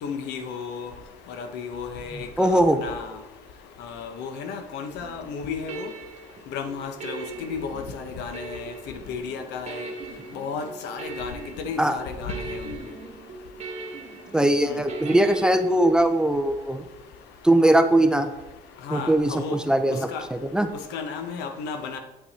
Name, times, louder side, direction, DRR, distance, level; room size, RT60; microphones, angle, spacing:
voice 1, 0.0-0.9 1.4-3.1 3.8-5.9 6.5-8.7 9.1-9.9 10.3-12.6 14.6-14.8 18.9-19.6 20.1-20.2 20.9-22.0, left 5 dB, 85° left, 1.0 m, -33 dB
voice 2, 2.4-2.8 11.8-12.0 14.3-16.8 17.4-18.3 18.9-20.7, right 1 dB, 5° right, 0.6 m, -20 dB
sound 1, 5.0-15.5, right 3 dB, 40° right, 1.4 m, -39 dB
8.7 x 5.9 x 4.2 m
cardioid pair, 110°, 17 cm